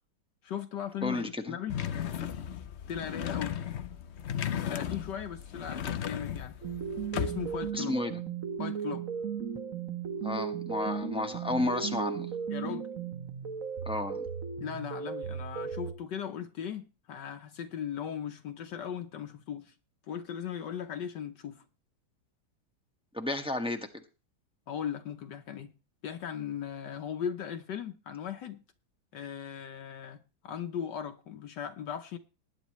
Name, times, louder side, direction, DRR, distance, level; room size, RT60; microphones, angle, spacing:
voice 1, 0.4-1.8 2.9-3.6 4.5-6.6 7.2-8.0 8.6-9.0 12.5-12.9 14.6-19.7 20.1-21.6 24.7-25.7 26.0-28.6 29.1-32.2, left 8 dB, 65° left, 1.4 m, -38 dB
voice 2, 1.0-1.5 7.7-8.2 10.2-12.3 13.9-14.2 23.1-23.9, left 2 dB, 5° right, 1.0 m, -32 dB
sound 1, 1.7-7.7, left 9 dB, 90° left, 0.6 m, -36 dB
sound 2, 6.6-15.9, right 7 dB, 50° right, 1.4 m, -36 dB
19.5 x 9.9 x 3.1 m
omnidirectional pair, 2.1 m